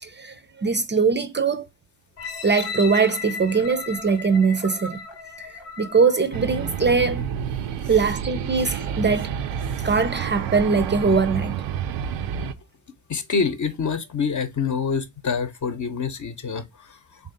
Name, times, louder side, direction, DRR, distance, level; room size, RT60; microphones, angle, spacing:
voice 1, 0.0-1.7 2.4-5.0 5.4-7.2 7.9-9.3 9.8-11.5, right 5 dB, 25° right, 0.5 m, -21 dB
sound 1, 2.2-7.1 7.7-7.8, left 4 dB, 85° left, 0.9 m, -36 dB
sound 2, 6.3-12.5, right 8 dB, 80° right, 0.5 m, -29 dB
voice 2, 13.1-17.2, left 5 dB, 45° left, 0.8 m, -26 dB
3.4 x 2.5 x 3.8 m
supercardioid pair, 45°, 42 cm